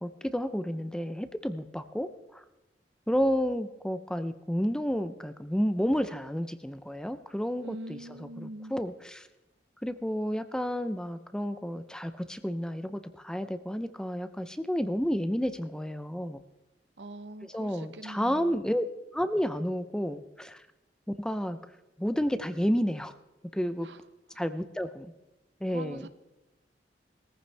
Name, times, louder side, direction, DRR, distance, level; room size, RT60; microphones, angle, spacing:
voice 1, 0.0-2.4 3.1-9.3 9.8-16.4 17.5-18.9 19.1-20.6 21.2-21.6 22.0-23.1 23.5-23.9 24.4-25.1 25.6-26.1, equal, 5° left, 11 dB, 0.6 m, -31 dB
voice 2, 7.6-8.8 17.0-18.6 23.8-24.0 24.3-24.4 25.7-26.1, right 1 dB, 80° right, 11 dB, 0.8 m, -43 dB
20.0 x 14.5 x 3.4 m, 0.97 s
head